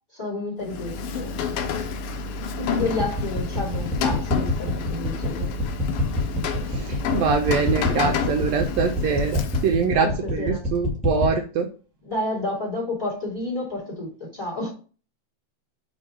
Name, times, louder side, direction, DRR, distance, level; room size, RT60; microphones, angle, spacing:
voice 1, 0.1-1.3 2.6-5.5 10.0-10.6 12.0-14.7, left 2 dB, 10° left, 2.5 m, -30 dB
Rain, 0.6-9.9, left 5 dB, 75° left, 1.4 m, -29 dB
sound 1, 2.8-11.3, equal, 5° right, 0.9 m, -26 dB
voice 2, 6.7-11.7, right 5 dB, 80° right, 1.6 m, -24 dB
5.4 x 3.8 x 4.6 m
omnidirectional pair, 3.3 m